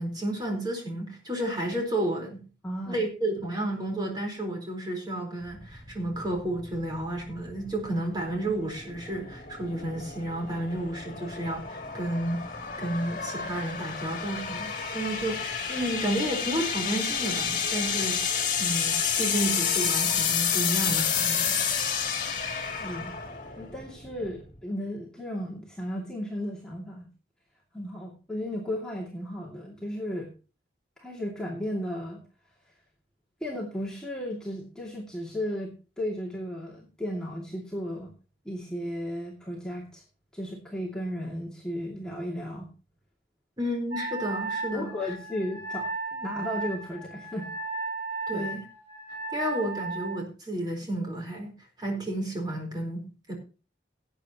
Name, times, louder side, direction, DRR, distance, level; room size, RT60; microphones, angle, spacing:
voice 1, 0.0-2.4 2.9-12.4 12.8-21.6 43.6-44.9 48.3-48.6 49.3-53.3, right 1 dB, 25° right, 1 dB, 4.3 m, -31 dB
voice 2, 2.6-3.0 22.6-23.2 23.6-27.1 27.7-30.3 31.0-32.2 33.4-38.1 38.4-40.0 40.3-42.7 44.7-47.5 48.3-48.4, equal, 5° left, -5 dB, 2.4 m, -35 dB
sound 1, 5.5-24.6, left 7 dB, 45° left, 2.7 m, -30 dB
Wind instrument woodwind instrument, 43.9-50.2, right 3 dB, 75° right, 6.3 m, -35 dB
18.5 x 9.0 x 3.0 m, 0.34 s
head